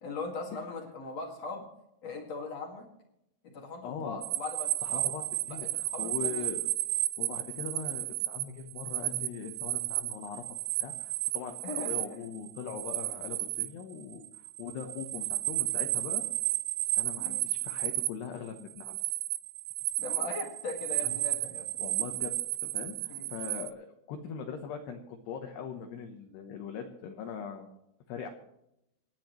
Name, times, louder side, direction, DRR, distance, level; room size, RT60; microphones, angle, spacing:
voice 1, 0.0-1.7 2.0-2.9 3.4-5.1 5.5-6.5 11.6-12.2 17.2-17.5 20.0-21.8 23.1-23.3, left 3 dB, 50° left, 1 dB, 2.1 m, -40 dB
voice 2, 3.8-4.2 4.8-6.7 7.2-10.4 10.8-16.2 17.0-19.0 21.8-22.3 22.6-27.8 28.1-28.3, left 7 dB, 70° left, 4 dB, 2.7 m, -41 dB
sound 1, 4.2-18.1 18.5-23.7, right 17 dB, 85° right, 2.7 m, -33 dB
26.5 x 10.0 x 3.1 m, 0.82 s
omnidirectional pair, 6.0 m